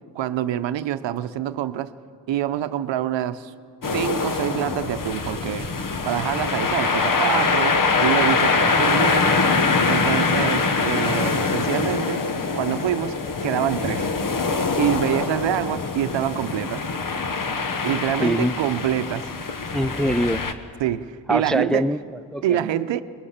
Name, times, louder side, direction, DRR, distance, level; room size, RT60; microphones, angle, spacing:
voice 1, 0.1-1.9 2.3-3.5 3.9-5.7 6.0-9.4 9.8-12.3 12.6-14.1 14.8-16.8 17.8-19.3 20.8-21.9 22.4-23.0, right 11 dB, 80° right, 12 dB, 0.8 m, -26 dB
sound 1, 3.8-20.5, left 4 dB, 50° left, 1.3 m, -23 dB
voice 2, 18.2-18.6 19.7-20.4 21.3-22.6, right 1 dB, ahead, 11 dB, 0.4 m, -23 dB
23.5 x 21.0 x 5.7 m, 2.3 s
cardioid pair, 60°, 43 cm